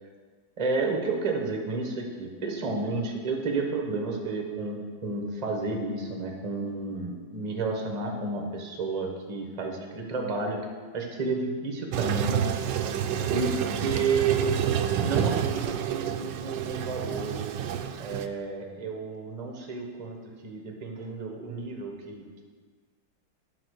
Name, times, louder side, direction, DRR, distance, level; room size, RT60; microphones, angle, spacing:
voice 1, 0.6-10.6 10.9-12.4 13.3-14.7 15.0-17.5 18.0-22.4, right 3 dB, 30° right, 1 dB, 0.8 m, -31 dB
Toilet flush, 11.9-18.3, right 9 dB, 75° right, 1.1 m, -29 dB
8.7 x 5.3 x 6.3 m, 1.5 s
omnidirectional pair, 2.2 m